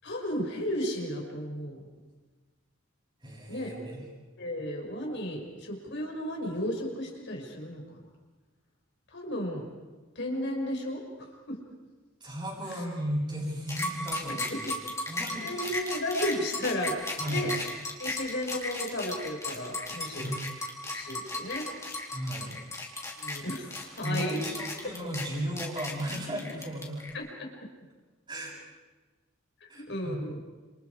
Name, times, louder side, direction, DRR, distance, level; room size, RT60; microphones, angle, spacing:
voice 1, 0.0-1.8 3.5-3.7 4.4-8.0 9.1-9.6 10.2-11.6 12.7-12.8 14.3-14.4 14.6-14.8 15.4-17.5 18.0-20.3 20.9-21.7 23.2-24.4 27.1-27.5 29.6-30.4, left 1 dB, 60° left, 1 dB, 6.0 m, -34 dB
voice 2, 3.2-4.0 12.2-14.7 15.1-15.7 17.2-17.5 20.2-20.4 22.1-22.6 24.0-27.0 28.3-28.5 29.7-30.3, equal, 25° right, -8 dB, 7.0 m, -35 dB
sound 1, 13.7-27.1, left 2 dB, 15° left, 4.2 m, -35 dB
30.0 x 28.5 x 4.9 m, 1.3 s
head